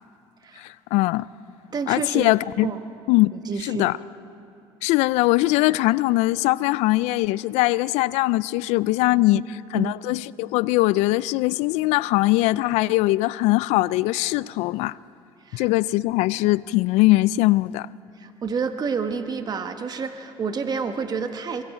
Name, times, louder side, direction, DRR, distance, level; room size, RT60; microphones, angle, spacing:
voice 1, 0.6-1.3 1.9-2.7 3.1-3.3 3.6-4.0 4.8-9.4 9.7-15.0 15.5-17.9, left 19 dB, 80° left, 0.4 m, -21 dB
voice 2, 1.7-2.3 2.6-2.8 3.3-3.9 9.3-9.4 9.7-9.9 15.4-15.7 18.2-21.6, right 5 dB, 35° right, 1.2 m, -29 dB
26.0 x 23.0 x 4.4 m
supercardioid pair, 95°, 11 cm